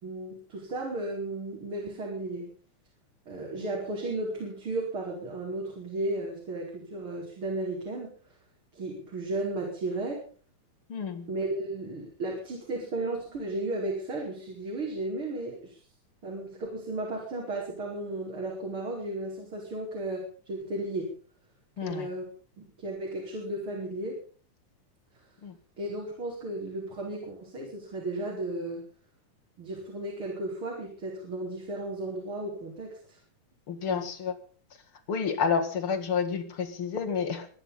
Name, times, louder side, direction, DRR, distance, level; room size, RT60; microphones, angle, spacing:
voice 1, 0.0-2.5 3.3-8.1 8.7-10.2 11.3-15.8 16.2-21.1 21.8-22.3 22.6-24.2 25.8-28.9 29.6-33.2 33.9-34.1, right 2 dB, 40° right, -2 dB, 5.7 m, -34 dB
voice 2, 10.9-11.3 21.8-22.1 25.4-25.6 33.7-34.3 35.1-37.5, left 6 dB, 50° left, 6 dB, 2.5 m, -30 dB
24.5 x 10.5 x 5.6 m, 0.43 s
omnidirectional pair, 3.5 m